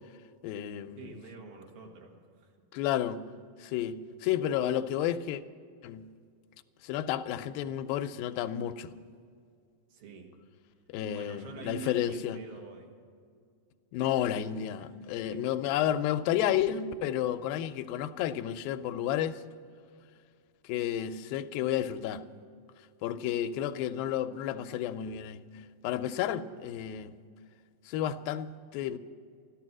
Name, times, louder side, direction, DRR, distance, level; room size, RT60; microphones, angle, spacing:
voice 1, 0.4-1.2 2.7-3.2 3.6-5.4 5.8-6.1 6.8-8.9 10.9-12.4 13.9-19.4 20.6-22.2 23.0-25.4 25.8-27.1 27.9-29.0, left 11 dB, 85° left, 2.4 m, -31 dB
voice 2, 1.0-2.5 9.9-10.3 11.1-12.9 14.8-14.9 15.2-15.5, right 5 dB, 85° right, 3.5 m, -46 dB
13.5 x 13.0 x 6.2 m
omnidirectional pair, 4.1 m